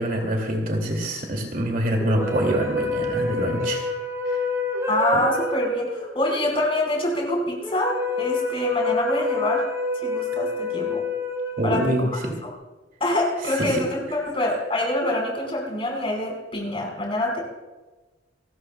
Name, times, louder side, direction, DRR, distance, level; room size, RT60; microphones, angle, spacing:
voice 1, 0.0-3.8 11.6-12.3 13.7-13.8, right 1 dB, 45° right, 1 dB, 2.7 m, -25 dB
sound 1, 2.0-12.4, left 2 dB, 15° right, 4.1 m, -28 dB
voice 2, 4.9-9.6 10.0-11.0 11.6-12.1 12.4-12.5 13.0-17.4, left 1 dB, 30° left, -1 dB, 5.0 m, -25 dB
29.5 x 13.5 x 2.4 m, 1.2 s
head